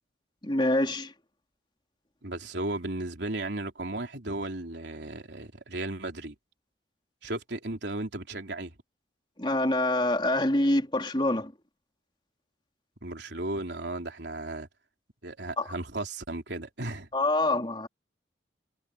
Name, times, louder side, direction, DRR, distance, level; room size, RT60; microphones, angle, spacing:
voice 1, 0.4-1.1 9.4-11.5 15.6-15.7 17.1-17.9, left 1 dB, 25° left, 3.2 m, -25 dB
voice 2, 2.2-6.3 7.2-8.7 13.0-14.7 15.2-17.1, right 2 dB, 75° right, 3.5 m, -35 dB
head